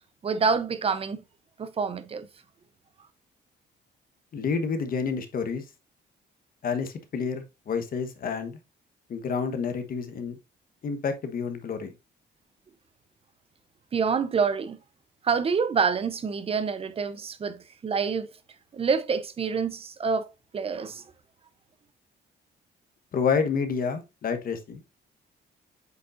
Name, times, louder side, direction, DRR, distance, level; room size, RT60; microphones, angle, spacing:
voice 1, 0.2-1.2 1.6-2.3 13.9-14.8 15.2-18.3 18.7-20.2 20.5-21.0, right 5 dB, 30° right, 0.7 m, -27 dB
voice 2, 4.3-5.6 6.6-8.6 9.1-10.4 10.8-11.9 23.1-24.8, left 5 dB, 50° left, 1.2 m, -29 dB
8.0 x 5.2 x 2.5 m
cardioid pair, 160°, 19 cm